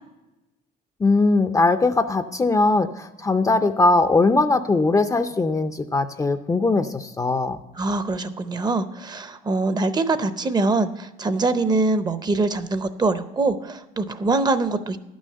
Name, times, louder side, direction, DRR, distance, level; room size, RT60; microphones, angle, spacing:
voice 1, 1.0-7.6, left 3 dB, 20° left, 9 dB, 0.5 m, -20 dB
voice 2, 7.8-15.0, right 3 dB, 25° right, 12 dB, 0.6 m, -23 dB
11.0 x 6.3 x 6.6 m, 0.98 s
cardioid pair, 110°, 17 cm